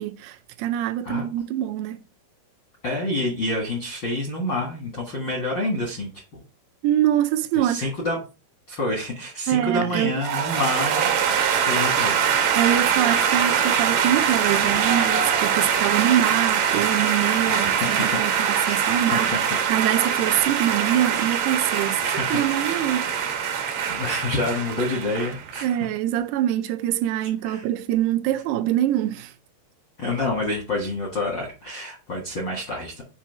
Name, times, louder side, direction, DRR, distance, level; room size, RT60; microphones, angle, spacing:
voice 1, 0.0-2.0 6.8-7.9 9.5-10.2 12.6-23.2 25.6-29.3, right 12 dB, 85° right, 2.6 m, -24 dB
voice 2, 2.8-6.4 7.6-8.2 8.7-11.1 11.5-12.2 17.5-18.2 18.6-19.6 21.8-22.4 23.0-25.6 27.4-27.6 30.0-33.0, left 1 dB, 60° left, 1.1 m, -28 dB
sound 1, 10.2-25.7, right 7 dB, 70° right, 2.4 m, -23 dB
7.1 x 2.8 x 5.8 m
omnidirectional pair, 4.7 m